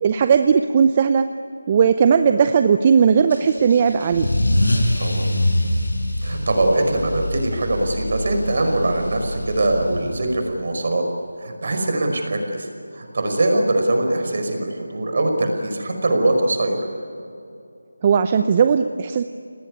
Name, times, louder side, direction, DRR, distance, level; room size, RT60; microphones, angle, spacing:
voice 1, 0.0-1.3 1.7-4.3 18.0-19.2, right 6 dB, 25° right, 9 dB, 0.7 m, -17 dB
Car / Engine starting / Accelerating revving vroom, 3.3-10.5, left 1 dB, 80° left, 7.0 m, -24 dB
voice 2, 5.0-5.4 6.2-11.0 11.4-16.9, right 2 dB, 50° right, 4 dB, 5.3 m, -22 dB
28.0 x 19.0 x 9.8 m, 2.5 s
figure-of-eight pair, 165°, 0 cm